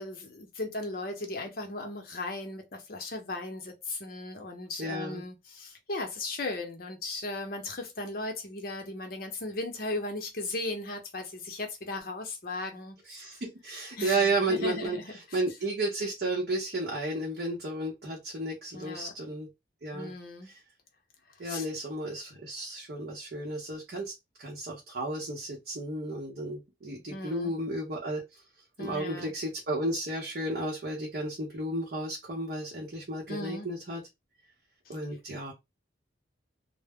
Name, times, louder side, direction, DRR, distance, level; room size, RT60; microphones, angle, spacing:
voice 1, 0.0-13.4 14.0-15.4 18.7-19.1 19.9-20.5 21.4-21.7 27.1-27.5 28.8-29.3 33.3-33.7 34.9-35.0, left 2 dB, 50° left, 0.7 m, -37 dB
voice 2, 4.8-5.2 13.1-15.0 15.3-19.5 19.8-20.1 20.5-20.6 21.4-24.1 24.4-28.4 28.8-34.0 34.9-35.5, right 2 dB, 55° right, 0.7 m, -33 dB
2.1 x 2.0 x 3.4 m
head